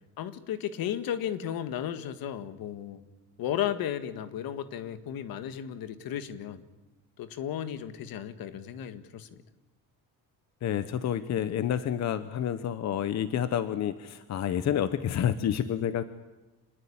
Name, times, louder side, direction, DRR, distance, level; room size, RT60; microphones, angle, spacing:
voice 1, 0.2-3.0 3.4-6.7 7.2-9.4, left 10 dB, 65° left, 11 dB, 1.9 m, -34 dB
voice 2, 10.6-16.0, left 9 dB, 45° left, 12 dB, 1.0 m, -29 dB
27.0 x 20.5 x 8.8 m, 1.1 s
cardioid pair, 155°, 37 cm